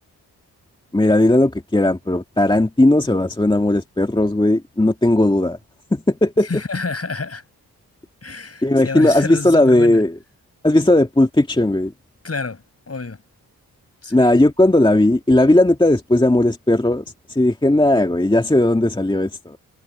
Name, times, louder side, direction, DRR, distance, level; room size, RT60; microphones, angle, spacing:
voice 1, 0.9-5.6 5.9-6.5 8.6-10.1 10.6-11.9 14.1-19.6, left 1 dB, 10° left, 1.9 m, -16 dB
voice 2, 6.4-7.4 8.2-10.0 12.2-13.2 14.0-14.4, left 4 dB, 40° left, 7.2 m, -29 dB
supercardioid pair, 40°, 39 cm